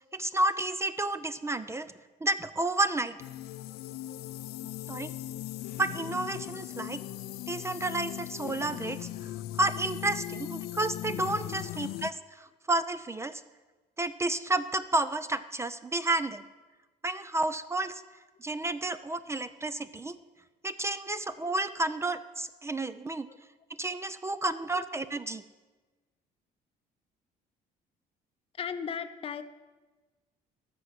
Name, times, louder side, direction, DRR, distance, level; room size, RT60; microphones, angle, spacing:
voice 1, 0.1-1.9 2.2-3.2 4.9-5.1 5.8-7.0 7.5-9.1 9.6-13.4 14.0-16.4 17.0-18.0 18.4-20.2 20.6-23.3 23.8-25.4, right 2 dB, 15° right, 13 dB, 0.4 m, -31 dB
sound 1, 3.2-12.1, left 14 dB, 70° left, 0.5 m, -39 dB
voice 2, 28.6-29.4, left 7 dB, 35° left, 8 dB, 0.7 m, -35 dB
13.5 x 6.0 x 7.7 m, 1.2 s
cardioid pair, 110°, 17 cm